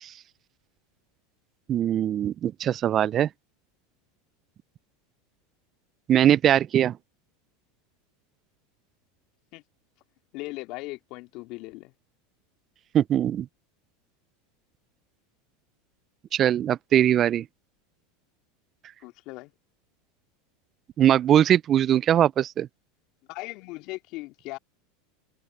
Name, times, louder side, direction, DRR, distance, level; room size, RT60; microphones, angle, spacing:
voice 1, 1.7-3.3 6.1-7.0 12.9-13.5 16.3-17.5 21.0-22.7, right 10 dB, 40° right, 0.5 m, -21 dB
voice 2, 10.3-11.9 19.0-19.5 23.3-24.6, left 22 dB, 55° left, 2.5 m, -38 dB
hypercardioid pair, 95°, 0 cm